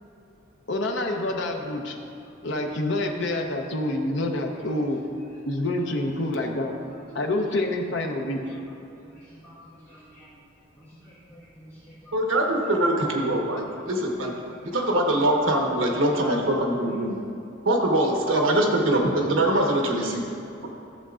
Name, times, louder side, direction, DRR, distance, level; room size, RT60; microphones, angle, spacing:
voice 1, 0.7-2.0 2.4-5.0 5.5-6.7 7.1-8.4, left 1 dB, 65° left, 2 dB, 0.8 m, -27 dB
voice 2, 2.5-2.9 4.5-5.1 6.0-6.1 6.5-6.9 8.1-8.2 8.4-10.4 10.7-12.1 13.7-15.0 16.0-16.4 16.8-17.0 20.4-20.7, equal, 15° left, -12 dB, 1.4 m, -51 dB
voice 3, 12.1-14.3 14.7-17.1 17.6-20.2, right 1 dB, 85° right, 0 dB, 1.2 m, -23 dB
13.5 x 6.9 x 2.5 m, 2.8 s
head